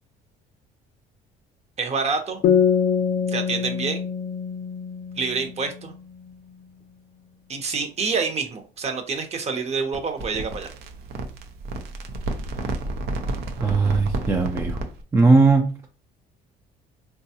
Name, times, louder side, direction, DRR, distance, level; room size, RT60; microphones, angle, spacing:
voice 1, 1.8-2.4 3.3-4.0 5.2-5.9 7.5-10.7, right 5 dB, 40° right, 0.8 m, -27 dB
sound 1, 2.4-5.9, left 7 dB, 55° left, 0.4 m, -24 dB
sound 2, 9.9-15.0, right 2 dB, 75° right, 0.6 m, -31 dB
voice 2, 13.6-14.8 15.1-15.7, right 3 dB, 15° right, 0.4 m, -18 dB
3.8 x 2.3 x 2.8 m
cardioid pair, 110°, 17 cm